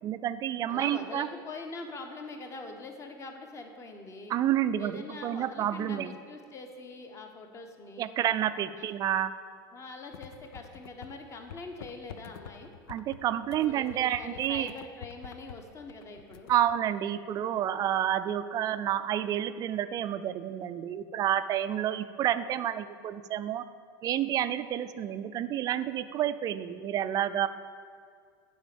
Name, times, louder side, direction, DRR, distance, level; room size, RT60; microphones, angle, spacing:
voice 1, 0.0-1.3 4.3-6.1 8.0-9.3 12.9-14.7 16.5-23.6 24.0-27.5, right 11 dB, 30° right, 12 dB, 0.4 m, -29 dB
voice 2, 0.7-4.3 4.8-8.1 8.7-8.9 9.7-12.7 13.6-16.5, left 3 dB, 25° left, 4 dB, 1.1 m, -43 dB
sound 1, 10.1-11.2 11.5-16.8, left 9 dB, 80° left, 0.5 m, -48 dB
9.0 x 5.0 x 7.0 m, 2.1 s
supercardioid pair, 125°, 12 cm